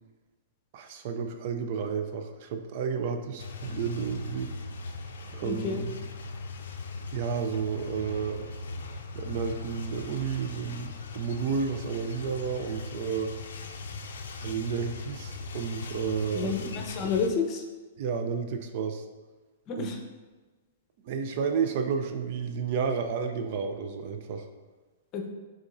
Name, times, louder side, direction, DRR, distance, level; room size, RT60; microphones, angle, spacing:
voice 1, 0.7-4.5 5.3-5.9 7.1-8.5 9.1-13.3 14.4-16.6 18.0-19.1 19.8-19.9 21.0-24.5, right 6 dB, 50° right, 7 dB, 0.4 m, -31 dB
sound 1, 3.4-17.3, left 3 dB, 80° left, 0.4 m, -39 dB
voice 2, 5.4-5.8 16.3-17.6 19.7-20.0 25.1-25.3, left 5 dB, 35° left, 3 dB, 0.7 m, -30 dB
5.2 x 3.6 x 2.6 m, 1.3 s
hypercardioid pair, 135°, 0 cm